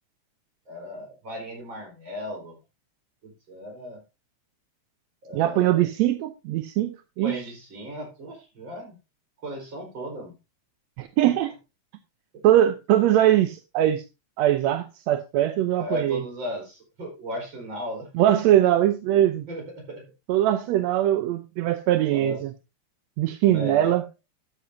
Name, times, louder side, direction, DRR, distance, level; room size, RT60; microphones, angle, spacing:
voice 1, 0.7-2.6 3.2-4.0 5.2-5.9 7.2-9.0 9.4-10.4 11.2-11.3 15.8-18.1 19.5-20.1 22.1-22.4 23.4-24.0, left 1 dB, 40° right, 5.1 m, -36 dB
voice 2, 5.3-7.4 11.0-11.5 12.4-14.0 14.4-16.2 18.2-19.5 20.3-22.5 23.2-24.0, right 12 dB, 75° right, 1.8 m, -21 dB
12.5 x 8.9 x 2.7 m
omnidirectional pair, 3.5 m